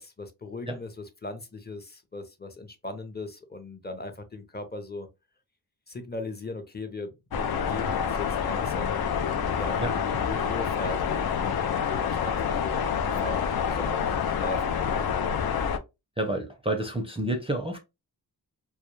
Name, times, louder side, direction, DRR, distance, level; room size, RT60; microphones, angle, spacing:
voice 1, 0.0-5.1 5.9-9.1 9.6-11.6 11.9-15.5, left 2 dB, 25° left, 0.7 m, -39 dB
sound 1, 7.3-15.8, left 7 dB, 60° left, 0.5 m, -27 dB
voice 2, 16.2-17.8, right 1 dB, 15° right, 0.5 m, -29 dB
2.2 x 2.2 x 3.0 m
cardioid pair, 55°, 41 cm